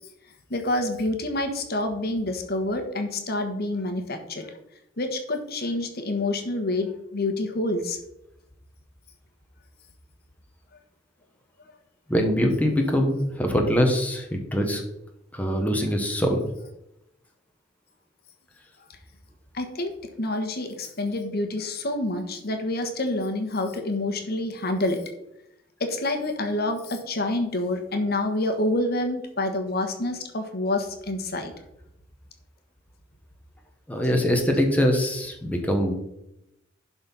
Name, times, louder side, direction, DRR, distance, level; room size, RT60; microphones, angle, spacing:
voice 1, 0.5-4.5 5.0-8.0 19.5-19.9 20.2-25.0 25.8-31.5, left 2 dB, 55° left, 5 dB, 1.4 m, -27 dB
voice 2, 12.1-14.8 15.3-16.4 33.9-35.9, equal, 10° left, 2 dB, 1.2 m, -23 dB
11.5 x 4.4 x 5.5 m, 0.85 s
head